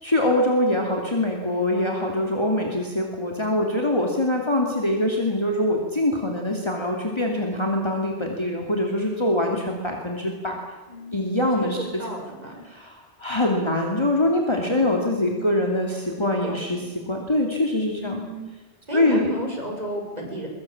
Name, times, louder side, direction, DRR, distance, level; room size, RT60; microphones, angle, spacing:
voice 1, 0.0-10.6 11.1-12.0 12.6-18.2 18.9-19.3, left 1 dB, 25° left, 1 dB, 2.8 m, -24 dB
voice 2, 10.9-11.3 11.5-12.5 14.5-15.6 16.2-16.7 17.9-18.5 18.9-20.5, equal, 35° right, 0 dB, 7.0 m, -34 dB
23.0 x 22.5 x 8.7 m, 1.2 s
omnidirectional pair, 1.2 m